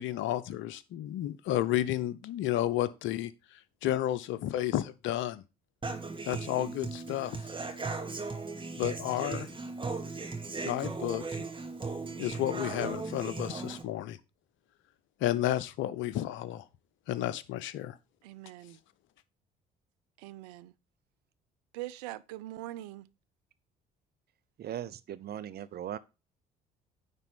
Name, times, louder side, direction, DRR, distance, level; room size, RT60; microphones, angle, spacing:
voice 1, 0.0-5.4 6.3-7.4 8.8-9.5 10.6-11.5 12.2-14.2 15.2-16.6 17.1-18.0, left 13 dB, 65° left, 0.8 m, -32 dB
Human voice / Acoustic guitar, 5.8-13.8, right 3 dB, 25° right, 2.3 m, -37 dB
voice 2, 18.2-18.8 20.2-20.7 21.7-23.1, right 16 dB, 80° right, 0.5 m, -42 dB
voice 3, 24.6-26.0, right 10 dB, 50° right, 0.8 m, -39 dB
9.8 x 4.2 x 5.3 m
hypercardioid pair, 55°, 21 cm